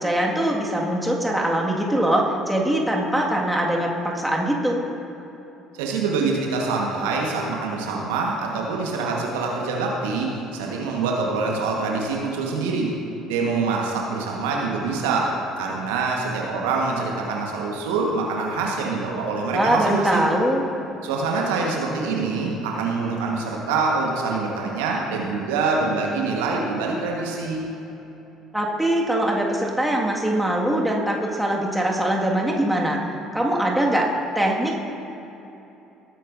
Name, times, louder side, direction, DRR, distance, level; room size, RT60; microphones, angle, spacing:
voice 1, 0.0-4.8 19.5-20.6 28.5-33.0 33.3-34.1 34.4-34.8, right 1 dB, 5° right, -2 dB, 1.9 m, -22 dB
voice 2, 5.8-12.9 13.3-20.3 21.0-27.6, right 4 dB, 75° right, -1 dB, 1.3 m, -25 dB
19.0 x 9.2 x 2.6 m, 3.0 s
hypercardioid pair, 55°, 0 cm